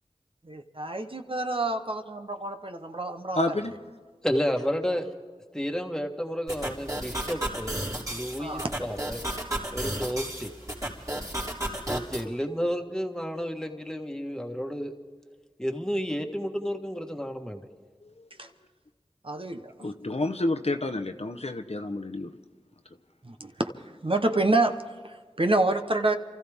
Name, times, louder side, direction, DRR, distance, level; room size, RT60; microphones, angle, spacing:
voice 1, 0.4-3.4 8.4-8.7 18.4-18.5 19.2-19.7 23.2-23.7 24.0-24.8 25.0-26.2, right 2 dB, 50° right, 6 dB, 1.0 m, -27 dB
voice 2, 3.3-3.7 18.0-18.3 19.8-22.3, left 2 dB, 65° left, 7 dB, 0.9 m, -29 dB
voice 3, 4.2-5.1 5.5-7.8 8.1-9.2 9.7-10.5 11.9-14.9 15.6-17.6, equal, 5° left, 4 dB, 1.6 m, -31 dB
sound 1, 6.5-12.2, right 1 dB, 25° right, 3.4 m, -33 dB
28.0 x 14.5 x 3.6 m, 1.5 s
wide cardioid pair, 45°, 12 cm